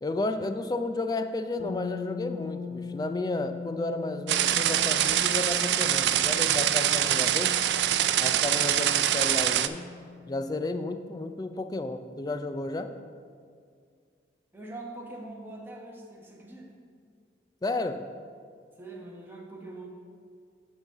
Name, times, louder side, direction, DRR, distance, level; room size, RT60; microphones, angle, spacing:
voice 1, 0.0-7.5 8.2-9.8 10.3-12.9 17.6-18.1, left 2 dB, 20° left, 8 dB, 0.3 m, -32 dB
sound 1, 1.6-11.4, left 5 dB, 40° right, 1.2 m, -41 dB
sound 2, 4.3-9.7, right 11 dB, 75° right, 0.3 m, -24 dB
voice 2, 14.5-16.7 18.8-19.9, right 2 dB, 10° right, -2 dB, 0.9 m, -43 dB
8.8 x 3.9 x 6.7 m, 2.1 s
head